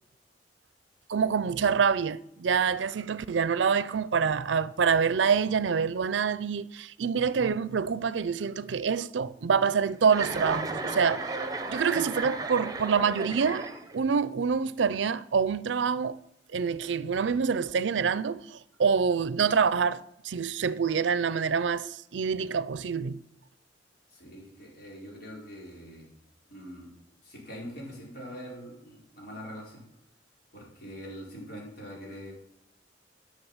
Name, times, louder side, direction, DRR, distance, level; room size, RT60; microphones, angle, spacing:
voice 1, 1.1-11.3 11.7-13.7 13.9-16.2 16.5-23.2, right 6 dB, 75° right, 0.5 m, -26 dB
Chuckle chortle, 10.1-14.1, right 3 dB, 20° right, 1.0 m, -34 dB
voice 2, 24.1-26.1 26.5-26.9 27.2-29.8 30.5-32.3, equal, 60° left, 4.5 m, -43 dB
11.0 x 6.5 x 7.2 m
head